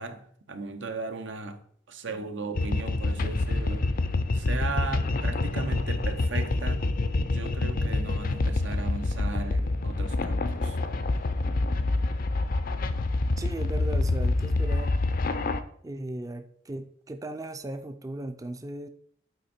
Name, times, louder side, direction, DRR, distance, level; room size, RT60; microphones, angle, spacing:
voice 1, 0.0-1.6 1.9-3.9 4.3-6.9 7.3-10.8, right 3 dB, 85° right, 0.9 m, -36 dB
sound 1, 2.6-15.6, left 2 dB, 50° left, 0.5 m, -27 dB
voice 2, 13.4-14.9 15.8-18.9, right 1 dB, 20° right, 0.4 m, -37 dB
8.0 x 4.5 x 4.3 m
head